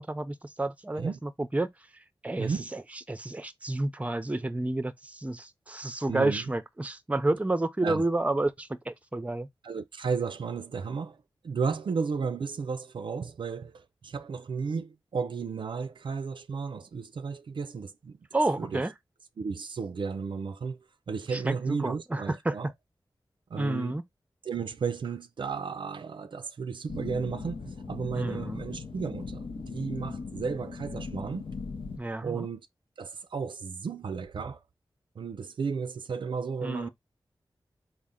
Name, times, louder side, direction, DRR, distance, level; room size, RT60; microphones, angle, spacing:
voice 1, 0.0-1.7 2.2-2.8 3.1-9.5 18.3-18.9 21.3-22.5 23.6-24.0 28.2-28.6 32.0-32.5 36.6-36.9, right 2 dB, 15° right, 0.5 m, -30 dB
voice 2, 2.4-2.7 6.1-6.4 7.8-8.0 9.6-11.2 11.4-18.2 18.6-18.8 19.4-20.8 21.1-22.7 23.5-23.9 24.4-31.4 32.2-32.6 33.0-34.6 35.2-36.9, right 5 dB, 70° right, 0.4 m, -33 dB
sound 1, 26.9-32.0, left 4 dB, 85° left, 0.7 m, -38 dB
4.1 x 2.1 x 3.5 m
wide cardioid pair, 65°, 9 cm